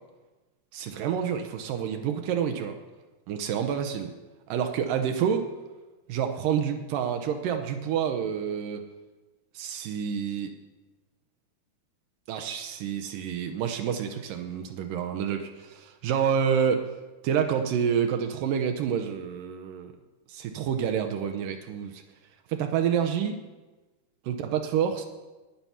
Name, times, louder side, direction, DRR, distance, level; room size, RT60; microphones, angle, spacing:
voice 1, 0.7-2.8 3.3-4.1 4.5-5.5 6.1-8.8 9.5-10.5 12.3-16.9 17.2-19.9 20.3-22.0 22.5-23.4 24.3-25.1, right 8 dB, 80° right, 6 dB, 2.4 m, -28 dB
11.5 x 9.4 x 5.6 m, 1.2 s
omnidirectional pair, 3.9 m